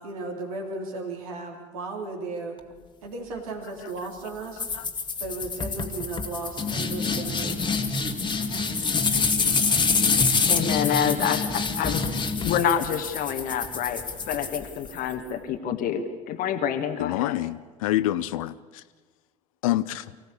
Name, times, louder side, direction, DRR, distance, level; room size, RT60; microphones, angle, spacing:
voice 1, 0.0-2.6 3.0-4.7 5.2-7.8, right 3 dB, 75° right, 3.5 m, -35 dB
sound 1, 4.6-15.1, left 4 dB, 25° left, 1.9 m, -26 dB
voice 2, 10.5-12.0 12.4-17.4, left 8 dB, 50° left, 1.4 m, -27 dB
voice 3, 17.0-18.8 19.6-20.2, left 15 dB, 70° left, 0.6 m, -27 dB
24.0 x 15.5 x 8.6 m
figure-of-eight pair, 65°, 18 cm